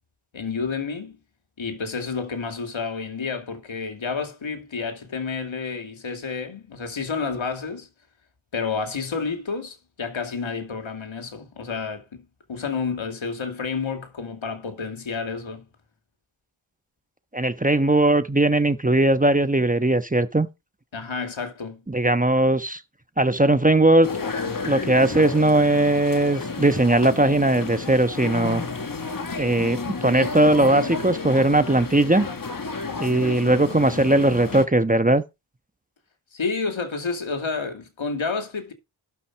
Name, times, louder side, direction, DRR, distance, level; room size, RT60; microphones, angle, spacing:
voice 1, 0.3-1.2 1.6-7.9 8.5-15.7 20.9-21.8 36.3-38.7, left 5 dB, 70° left, 2.6 m, -30 dB
voice 2, 17.3-20.5 21.9-22.8 23.2-24.1 24.6-28.6 29.4-32.3 33.0-35.2, right 2 dB, 15° right, 1.1 m, -19 dB
sound 1, 24.0-34.7, left 4 dB, 45° left, 1.9 m, -31 dB
12.5 x 6.0 x 4.7 m
cardioid pair, 50°, 48 cm